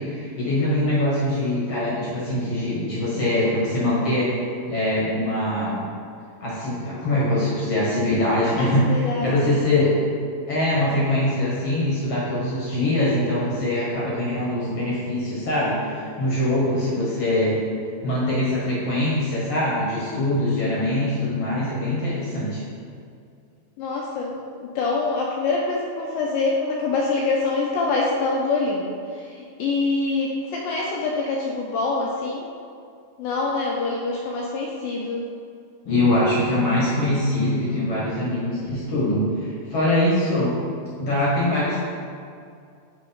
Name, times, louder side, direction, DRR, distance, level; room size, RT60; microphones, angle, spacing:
voice 1, 0.0-4.3 4.7-5.9 6.4-10.0 10.5-17.6 18.0-22.6 35.8-40.5 41.0-41.8, left 1 dB, 60° left, -7 dB, 1.6 m, -23 dB
voice 2, 8.6-9.7 23.8-32.5 33.2-35.2, left 3 dB, 85° left, -2 dB, 2.1 m, -25 dB
7.0 x 3.7 x 5.2 m, 2.3 s
omnidirectional pair, 4.6 m